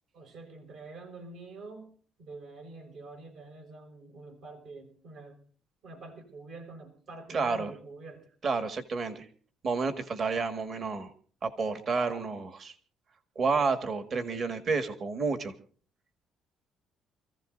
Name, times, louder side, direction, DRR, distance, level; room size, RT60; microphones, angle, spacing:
voice 1, 0.1-1.9 2.2-5.4 5.8-8.4, right 3 dB, 70° right, 3 dB, 5.5 m, -46 dB
voice 2, 7.3-7.7 8.4-9.3 9.6-11.1 11.4-12.7 13.4-15.5, right 4 dB, 45° right, 7 dB, 1.7 m, -30 dB
28.5 x 15.5 x 2.6 m, 0.42 s
cardioid pair, 130°, 0 cm